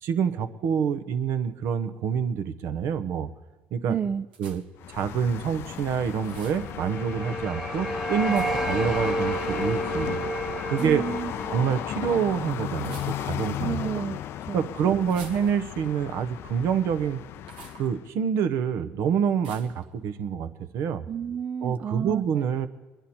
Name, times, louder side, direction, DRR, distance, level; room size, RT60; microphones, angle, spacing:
voice 1, 0.0-3.3 3.7-4.0 4.4-4.6 4.9-10.2 10.7-11.0 11.5-13.8 14.5-17.2 17.8-21.1 21.6-22.7, right 7 dB, 65° right, 11 dB, 0.9 m, -27 dB
voice 2, 3.9-4.3 10.8-11.3 13.6-14.6 21.1-22.3, right 8 dB, 35° right, 11 dB, 0.4 m, -31 dB
sound 1, 4.3-4.8 6.2-6.7 8.3-8.8 10.7-11.0 12.8-13.5 15.0-15.9 17.4-17.9 19.4-19.8, right 5 dB, 90° right, 1.2 m, -48 dB
sound 2, 4.8-18.1, left 12 dB, 60° left, 0.4 m, -35 dB
sound 3, 6.3-13.3, right 2 dB, 5° right, 1.0 m, -32 dB
23.0 x 10.5 x 4.3 m, 1.2 s
hypercardioid pair, 75°, 5 cm